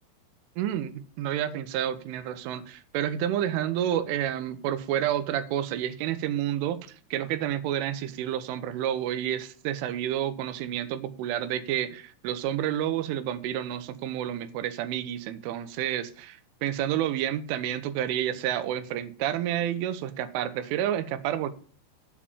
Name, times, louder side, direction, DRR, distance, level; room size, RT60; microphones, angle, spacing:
voice 1, 0.6-21.5, right 11 dB, 85° right, 3.4 m, -30 dB
8.4 x 7.5 x 7.1 m
omnidirectional pair, 5.5 m